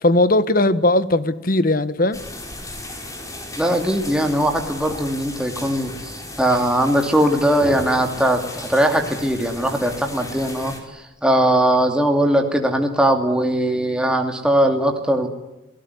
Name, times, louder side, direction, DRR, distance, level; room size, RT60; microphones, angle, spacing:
voice 1, 0.0-2.2, left 2 dB, 50° left, 14 dB, 1.4 m, -18 dB
sound 1, 2.1-10.8, left 1 dB, 20° left, 5.2 m, -35 dB
voice 2, 3.6-15.3, right 1 dB, 5° right, 3 dB, 2.7 m, -20 dB
28.0 x 18.5 x 9.7 m, 0.96 s
head